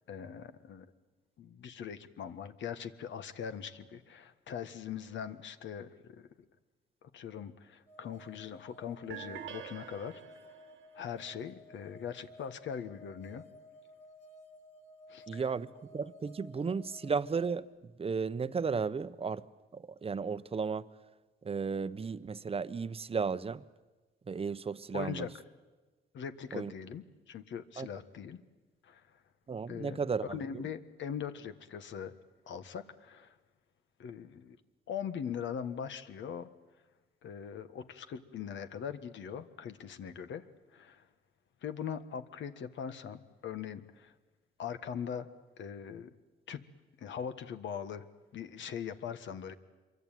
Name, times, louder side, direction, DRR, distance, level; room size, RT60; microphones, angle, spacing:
voice 1, 0.1-0.9 1.4-6.3 7.0-10.2 10.9-13.4 15.1-15.5 24.9-25.3 26.1-28.4 28.8-29.0 29.7-32.1 32.5-33.3 34.0-34.6 34.9-36.5 37.2-40.5 40.7-41.0 41.6-44.1 44.6-45.3 45.6-46.1 46.5-46.6 47.0-48.1 48.3-49.5, left 8 dB, 70° left, 1.6 m, -41 dB
sound 1, 7.9-17.6, equal, 35° left, 3.4 m, -55 dB
sound 2, 9.1-10.9, right 9 dB, 75° right, 1.8 m, -46 dB
voice 2, 15.3-17.7 18.0-19.4 19.7-20.9 21.4-23.6 24.3-25.3 26.5-26.7 27.8-27.9 29.5-30.6, right 5 dB, 30° right, 0.9 m, -34 dB
26.0 x 23.5 x 9.2 m
cardioid pair, 90°, 20 cm